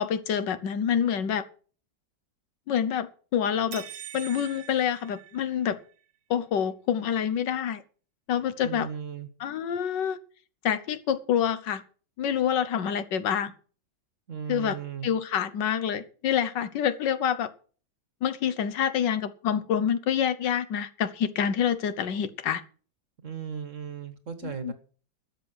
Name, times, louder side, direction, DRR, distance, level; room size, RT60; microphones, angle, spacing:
voice 1, 0.0-1.4 2.7-3.8 4.1-5.8 6.3-7.8 8.3-8.9 9.4-10.2 10.6-11.8 12.2-13.5 14.5-14.8 15.0-17.5 18.2-22.6 24.4-24.7, left 8 dB, 75° left, 1.6 m, -27 dB
sound 1, 3.7-5.9, right 10 dB, 70° right, 1.5 m, -43 dB
voice 2, 8.6-9.3 14.3-15.1 23.2-24.7, right 7 dB, 45° right, 1.5 m, -36 dB
12.5 x 7.4 x 7.9 m
omnidirectional pair, 2.0 m